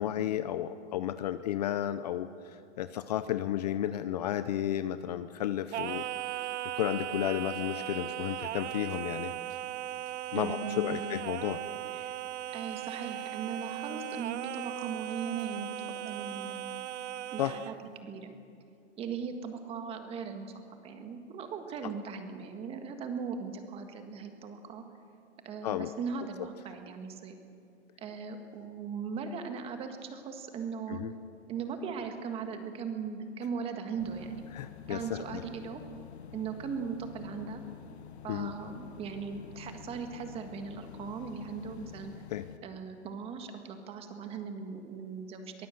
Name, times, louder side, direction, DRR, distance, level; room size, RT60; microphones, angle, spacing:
voice 1, 0.0-6.0 6.3-6.5 6.8-9.3 10.3-11.6 17.4-17.5 25.6-25.9 30.9-31.1 34.5-35.4 38.3-38.5 42.3-42.4, left 11 dB, 35° left, 12 dB, 0.6 m, -33 dB
Singing, 5.7-17.8, right 12 dB, 75° right, 0.7 m, -38 dB
voice 2, 10.3-11.0 11.9-12.1 12.5-16.8 17.3-17.7 18.0-18.3 19.0-24.8 25.4-27.4 28.0-31.0 31.5-34.4 34.9-35.8 36.3-37.6 38.2-42.1 42.6-45.7, right 6 dB, 15° right, 6 dB, 1.6 m, -38 dB
sound 1, 34.0-42.6, left 9 dB, 65° left, 1.4 m, -48 dB
23.0 x 19.5 x 7.8 m, 2.5 s
hypercardioid pair, 165°, 35 cm